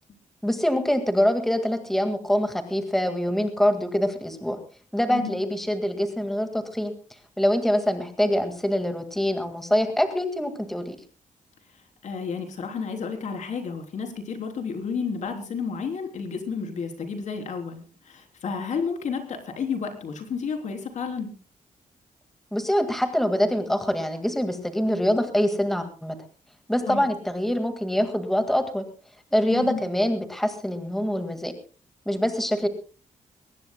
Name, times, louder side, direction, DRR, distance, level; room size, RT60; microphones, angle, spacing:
voice 1, 0.4-4.6 4.9-6.9 7.4-11.0 22.5-26.2 26.7-28.8 29.3-31.5 32.1-32.7, equal, ahead, 7 dB, 1.9 m, -24 dB
voice 2, 12.0-21.3 26.9-27.1 29.5-29.8, left 5 dB, 65° left, 4 dB, 3.6 m, -31 dB
23.0 x 19.0 x 2.2 m, 0.35 s
wide cardioid pair, 160°, 13 cm